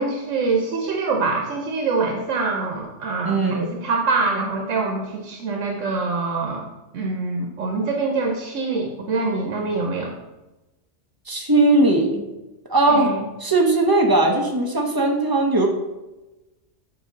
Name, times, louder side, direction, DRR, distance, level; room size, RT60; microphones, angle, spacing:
voice 1, 0.0-6.6 6.9-10.1 12.9-13.2, right 3 dB, 85° right, 1 dB, 1.2 m, -24 dB
voice 2, 3.2-3.7 11.3-12.2 12.7-13.1 13.4-15.7, right 2 dB, 20° right, 1 dB, 0.7 m, -18 dB
7.6 x 2.8 x 5.1 m, 1.0 s
omnidirectional pair, 1.3 m